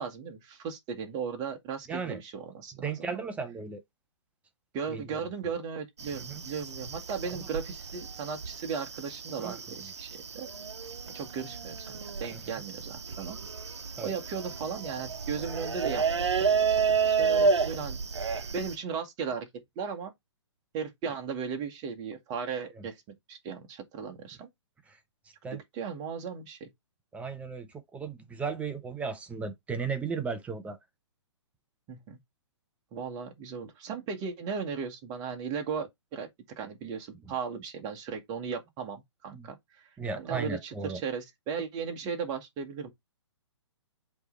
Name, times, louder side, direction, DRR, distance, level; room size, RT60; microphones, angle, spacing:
voice 1, 0.0-3.2 4.7-10.5 11.1-13.4 14.0-16.0 17.0-18.0 18.5-19.5 19.8-20.1 20.7-23.0 23.3-24.5 25.5-26.7 31.9-32.2 32.9-39.9 40.2-42.9, right 6 dB, 25° right, 1.7 m, -36 dB
voice 2, 1.9-2.2 2.8-3.8 4.9-5.0 6.1-6.4 7.3-7.4 9.4-9.6 12.3-12.4 14.0-14.1 25.4-25.6 27.1-27.7 27.9-30.8 39.3-39.5 40.0-41.0, right 5 dB, 10° right, 0.7 m, -35 dB
sound 1, 6.0-18.8, right 5 dB, 65° right, 0.9 m, -31 dB
8.0 x 3.3 x 3.9 m
figure-of-eight pair, 125°, 15 cm